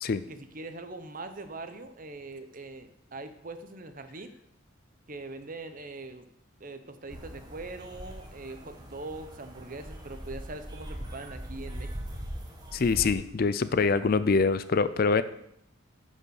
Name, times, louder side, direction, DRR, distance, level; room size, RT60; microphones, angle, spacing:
voice 1, 0.3-4.3 5.1-6.3 6.6-12.0, right 2 dB, 40° right, 9 dB, 0.8 m, -42 dB
sound 1, 7.1-13.1, right 1 dB, 20° right, 1.4 m, -41 dB
voice 2, 12.7-15.2, left 4 dB, 45° left, 14 dB, 0.4 m, -24 dB
10.5 x 5.3 x 6.4 m, 0.77 s
head